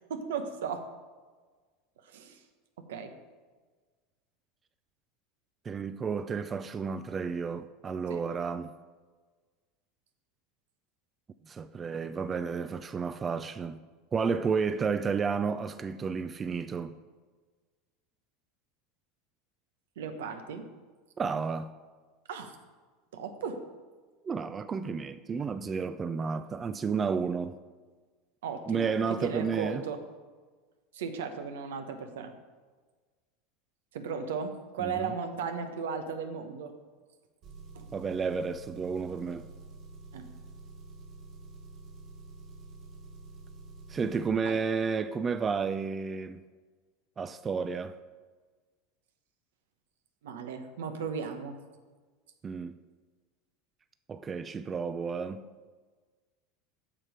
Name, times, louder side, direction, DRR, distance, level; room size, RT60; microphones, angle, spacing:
voice 1, 0.1-0.9 2.0-2.4 2.8-3.1 8.1-8.2 20.0-20.7 22.3-22.5 23.1-23.6 28.4-30.0 30.9-32.3 33.9-36.7 37.7-37.9 40.1-40.3 44.4-44.6 50.2-51.6, right 6 dB, 80° right, 0.9 m, -36 dB
voice 2, 5.7-8.7 11.5-13.8 14.1-17.0 21.2-21.7 24.2-27.6 28.7-29.8 34.8-35.1 37.9-39.5 43.9-46.4 47.2-47.9 52.4-52.8 54.1-55.4, right 5 dB, 25° right, 0.4 m, -31 dB
Engine, 37.4-44.3, right 2 dB, 45° right, 1.4 m, -48 dB
7.5 x 6.5 x 5.1 m
hypercardioid pair, 100°, 0 cm